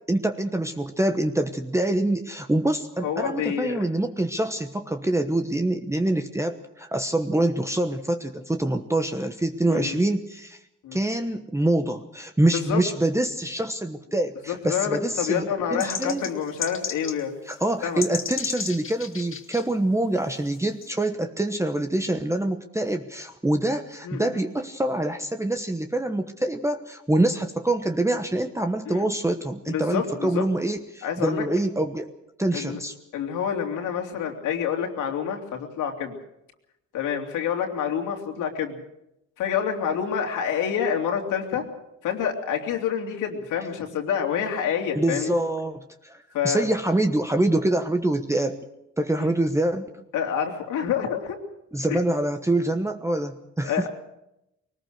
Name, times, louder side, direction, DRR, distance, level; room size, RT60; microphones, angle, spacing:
voice 1, 0.0-10.6 10.9-15.4 15.7-16.2 17.5-32.1 32.4-32.9 44.9-48.6 49.0-50.0 51.7-53.9, right 1 dB, 10° right, 6 dB, 1.2 m, -25 dB
voice 2, 3.0-3.8 9.7-10.0 10.8-11.0 12.5-12.8 14.5-17.4 17.8-18.0 24.0-24.4 28.9-29.0 29.7-30.4 31.0-31.4 32.5-32.8 33.1-36.2 36.9-38.8 39.4-41.6 42.0-45.3 46.3-46.7 49.2-49.3 50.1-51.4 51.9-52.0 53.6-53.9, left 8 dB, 85° left, 2 dB, 3.3 m, -27 dB
sound 1, 15.8-17.2 17.5-17.6 17.8-19.6 20.3-20.9, left 6 dB, 45° left, 2.0 m, -33 dB
22.0 x 19.5 x 6.6 m, 0.87 s
cardioid pair, 90°, 30 cm